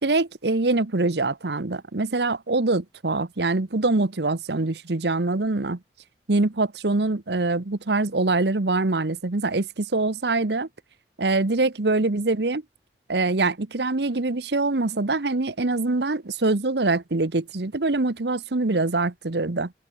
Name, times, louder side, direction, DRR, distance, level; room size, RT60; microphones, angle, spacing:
voice 1, 0.0-5.8 6.3-10.7 11.2-12.6 13.1-19.7, right 3 dB, 75° right, 1.1 m, -24 dB
open air
head